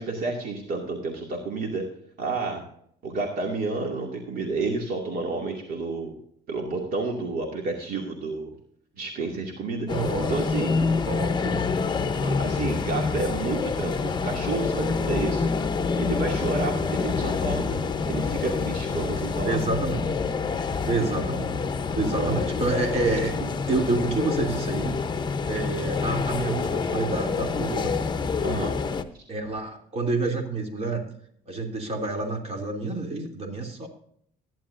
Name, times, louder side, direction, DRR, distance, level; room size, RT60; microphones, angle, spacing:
voice 1, 0.0-1.8 2.2-2.6 3.0-6.1 6.5-8.5 9.0-9.9 10.2-10.8 12.2-15.5 16.0-17.8 18.1-19.6 21.1-21.2 22.0-22.4 23.4-23.5 28.4-28.8 29.1-29.2, right 3 dB, 60° right, 0 dB, 2.3 m, -30 dB
sound 1, 9.9-29.0, left 5 dB, 25° left, 0.9 m, -27 dB
voice 2, 9.9-10.3 10.8-11.6 19.4-20.1 20.9-21.5 21.9-23.3 23.7-25.0 25.5-28.0 29.3-31.0 31.5-33.9, right 3 dB, 40° right, 2 dB, 3.0 m, -28 dB
14.5 x 10.5 x 2.6 m, 0.65 s
cardioid pair, 110°, 17 cm